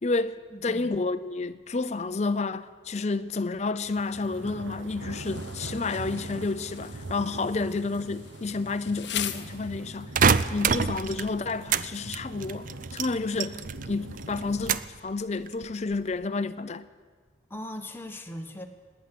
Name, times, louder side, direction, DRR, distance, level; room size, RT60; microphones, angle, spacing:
voice 1, 0.0-10.1 10.5-16.8, left 3 dB, 35° left, 0.5 m, -30 dB
voice 2, 0.5-1.0 17.5-18.7, left 1 dB, 10° left, 1.0 m, -39 dB
sound 1, 3.8-14.7, right 2 dB, 80° right, 1.0 m, -42 dB
Insect, 5.2-10.2, left 11 dB, 65° left, 0.8 m, -40 dB
sound 2, 10.2-11.9 12.1-13.9 14.2-15.0 15.5-15.9, right 6 dB, 45° right, 0.4 m, -25 dB
18.0 x 10.5 x 7.6 m
head